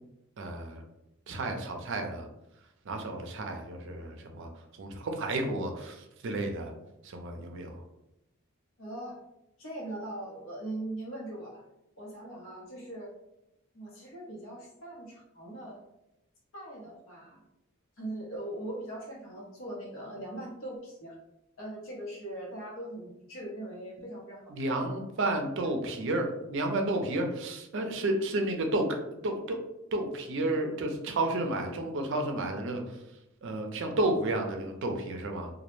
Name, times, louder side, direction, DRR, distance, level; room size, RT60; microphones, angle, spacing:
voice 1, 0.4-0.8 1.3-2.3 2.9-6.7 7.0-7.8 24.5-29.0 29.2-29.6 29.9-33.0 33.4-35.5, right 2 dB, 60° right, 4 dB, 0.4 m, -31 dB
voice 2, 8.8-9.2 9.6-11.6 12.0-13.1 13.7-15.8 16.5-17.4 18.0-21.2 21.6-24.5, right 1 dB, 70° left, -3 dB, 0.8 m, -40 dB
2.2 x 2.0 x 3.0 m, 0.87 s
head